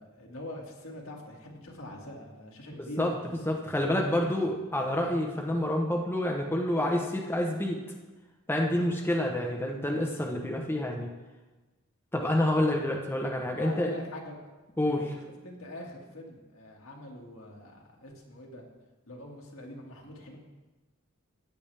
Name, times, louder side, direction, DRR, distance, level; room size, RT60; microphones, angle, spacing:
voice 1, 0.0-3.1 3.9-4.3 13.6-14.5 14.8-15.1 15.4-18.6 19.1-20.4, left 1 dB, 75° left, -1 dB, 2.1 m, -43 dB
voice 2, 2.8-3.1 3.4-7.8 8.5-11.1 12.1-13.9 14.8-15.1, left 1 dB, 10° left, 0 dB, 1.0 m, -28 dB
14.0 x 9.0 x 3.4 m, 1.2 s
head